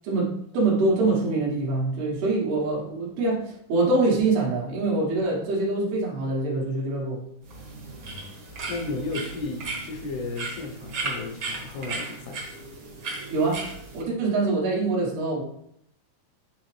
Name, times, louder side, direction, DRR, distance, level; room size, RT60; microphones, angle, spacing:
voice 1, 0.0-7.2 13.3-13.6 13.9-15.4, right 3 dB, 85° right, -3 dB, 3.5 m, -24 dB
sound 1, 7.4-14.0, right 3 dB, 55° right, 1.2 m, -36 dB
voice 2, 8.7-12.4, left 3 dB, 85° left, 2 dB, 3.1 m, -33 dB
9.5 x 3.5 x 3.4 m, 0.73 s
omnidirectional pair, 4.4 m